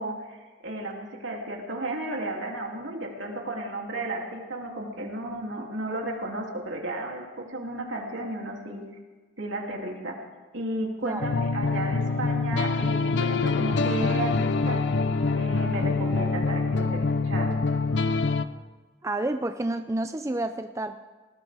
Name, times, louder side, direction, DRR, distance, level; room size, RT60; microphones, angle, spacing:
voice 1, 0.0-8.8 9.4-10.2 10.5-14.9 15.4-17.6, right 1 dB, 75° right, 0 dB, 2.9 m, -33 dB
sound 1, 11.2-18.5, left 4 dB, 65° left, 0.6 m, -25 dB
Wind instrument woodwind instrument, 11.5-18.9, equal, 15° left, 3.6 m, -48 dB
voice 2, 19.0-21.0, right 2 dB, 15° right, 8 dB, 0.4 m, -29 dB
20.0 x 18.5 x 3.5 m, 1.3 s
head